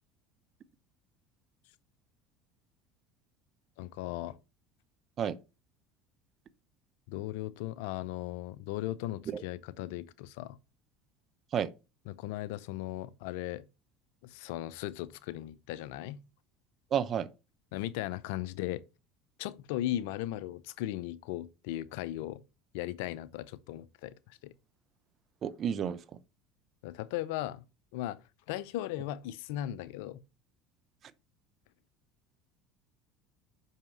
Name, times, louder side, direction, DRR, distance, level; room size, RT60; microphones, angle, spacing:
voice 1, 3.8-4.4 7.1-10.6 12.1-13.7 14.2-16.2 17.7-18.8 19.4-22.4 22.7-24.5 26.8-27.6 27.9-28.2 28.5-30.2, left 14 dB, 75° left, 0.5 m, -37 dB
voice 2, 16.9-17.3 25.4-26.2 31.0-31.1, right 8 dB, 45° right, 0.7 m, -31 dB
5.8 x 5.5 x 5.3 m
hypercardioid pair, 80°, 0 cm